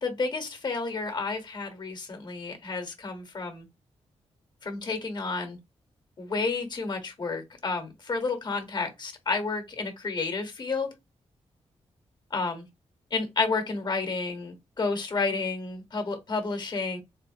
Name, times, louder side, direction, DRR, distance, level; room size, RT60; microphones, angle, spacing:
voice 1, 0.0-3.7 4.6-5.6 6.2-10.9 12.3-12.6 13.1-17.0, left 4 dB, 40° left, 1.1 m, -31 dB
4.3 x 2.0 x 2.6 m
wide cardioid pair, 110°, 11 cm